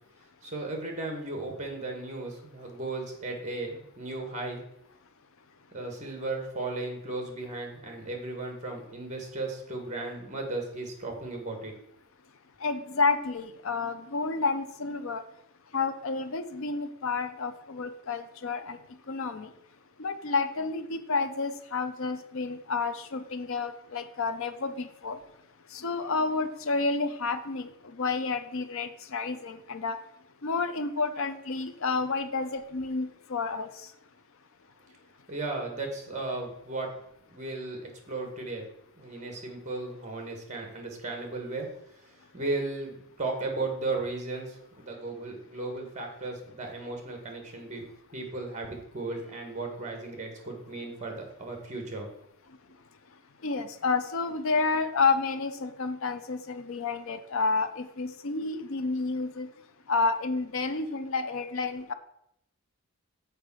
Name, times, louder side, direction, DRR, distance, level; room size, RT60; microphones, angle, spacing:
voice 1, 0.4-4.6 5.7-11.7 35.3-36.9 37.3-37.8 38.1-38.7 39.0-41.7 41.9-47.8 48.1-52.1, right 2 dB, 30° right, 3 dB, 1.7 m, -35 dB
voice 2, 12.6-15.2 15.7-19.5 20.0-25.2 25.7-30.0 30.4-33.9 52.5-52.6 53.4-59.5 59.9-61.9, left 4 dB, 65° left, 10 dB, 0.6 m, -30 dB
6.7 x 4.6 x 6.2 m, 0.76 s
head